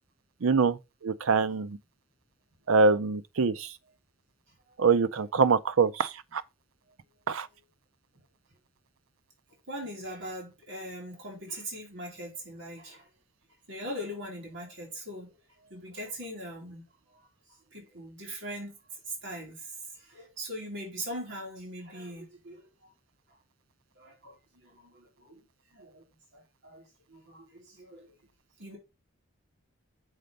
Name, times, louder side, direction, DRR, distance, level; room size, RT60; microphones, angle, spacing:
voice 1, 0.4-1.8 2.7-3.7 4.8-6.4 7.3-7.5, right 4 dB, 80° right, 0.6 m, -24 dB
voice 2, 9.7-13.1 13.7-17.3 17.7-18.7 19.1-22.9 23.3-23.4 23.9-25.4 25.7-26.0 26.3-28.2 28.6-28.8, equal, 60° right, 3.2 m, -41 dB
6.6 x 4.3 x 5.2 m
head